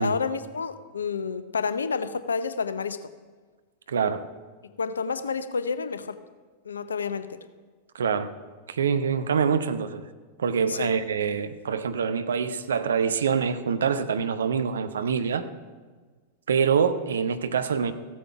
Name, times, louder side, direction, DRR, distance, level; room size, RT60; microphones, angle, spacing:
voice 1, 0.0-3.0 4.8-6.2 6.6-7.4 10.7-10.9, left 5 dB, 70° left, 13 dB, 0.6 m, -29 dB
voice 2, 3.9-4.2 7.9-8.3 8.7-10.0 10.4-15.4 16.5-17.9, right 6 dB, 65° right, 11 dB, 0.7 m, -25 dB
15.0 x 8.6 x 5.7 m, 1.4 s
figure-of-eight pair, 90°, 0 cm